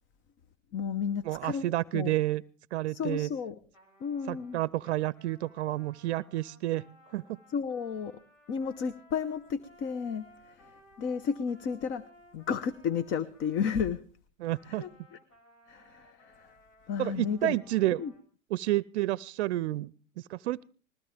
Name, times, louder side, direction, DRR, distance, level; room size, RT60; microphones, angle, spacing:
voice 1, 0.7-1.7 1.9-2.1 2.9-3.6 4.0-4.6 7.5-8.1 8.5-10.3 11.0-12.0 12.3-14.0 14.7-14.9 15.7-16.3 16.9-17.6 18.0-18.1, left 6 dB, 30° left, 15 dB, 0.9 m, -32 dB
voice 2, 1.2-2.4 2.7-3.3 4.3-6.8 7.1-7.4 14.4-14.8 17.0-18.0 18.5-20.6, right 16 dB, 65° right, 20 dB, 0.6 m, -30 dB
Trumpet, 3.7-13.9 14.4-18.2, left 1 dB, 75° left, 7.6 m, -60 dB
20.5 x 16.0 x 3.5 m, 0.40 s
hypercardioid pair, 120°, 37 cm